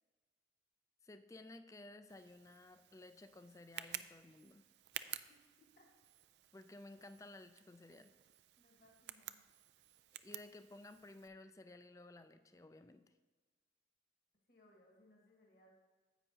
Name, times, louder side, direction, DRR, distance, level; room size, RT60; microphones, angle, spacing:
voice 1, 1.0-4.6 6.5-8.1 10.1-13.0, left 2 dB, 20° left, 10 dB, 0.3 m, -56 dB
Tick, 2.1-11.3, right 12 dB, 75° right, 0.3 m, -52 dB
voice 2, 8.6-9.4 14.5-15.7, left 1 dB, 55° left, -2 dB, 1.5 m, -67 dB
9.9 x 8.2 x 2.8 m, 1.4 s
head